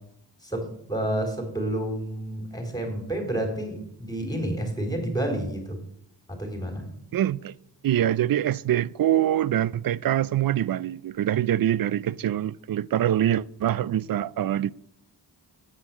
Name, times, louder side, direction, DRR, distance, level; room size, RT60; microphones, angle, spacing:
voice 1, 0.4-5.8 6.3-6.9, right 1 dB, 10° left, 3.6 m, -30 dB
voice 2, 7.1-7.5 7.8-14.7, right 11 dB, 55° right, 0.5 m, -24 dB
8.1 x 6.0 x 7.3 m
cardioid pair, 55°, 43 cm